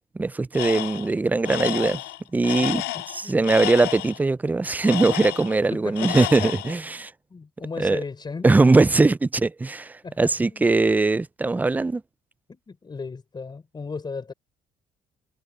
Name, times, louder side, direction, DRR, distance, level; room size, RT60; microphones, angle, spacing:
voice 1, 0.2-2.0 2.3-2.8 3.1-7.1 7.8-8.0 8.4-12.0, right 3 dB, 10° right, 0.3 m, -21 dB
Tools, 0.5-1.1 1.4-4.2 4.8-5.7 6.0-6.8, left 16 dB, 85° left, 3.7 m, -30 dB
voice 2, 5.7-6.6 6.9-8.5 10.0-10.7 12.5-14.3, left 4 dB, 25° left, 5.3 m, -36 dB
cardioid pair, 110°, 17 cm